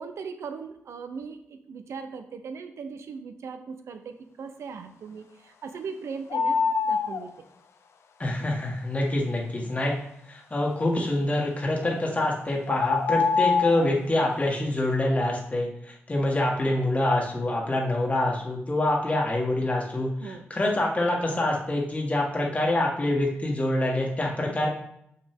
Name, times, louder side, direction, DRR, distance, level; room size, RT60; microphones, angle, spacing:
voice 1, 0.0-7.3 20.2-20.4, right 5 dB, 80° right, 8 dB, 0.7 m, -39 dB
sound 1, 6.3-7.2 11.8-12.0 12.7-13.9, left 5 dB, 80° left, 0.6 m, -24 dB
voice 2, 8.2-10.0 10.3-24.7, left 1 dB, 30° left, -2 dB, 1.5 m, -26 dB
6.4 x 5.6 x 3.6 m, 0.74 s
cardioid pair, 70°, 5 cm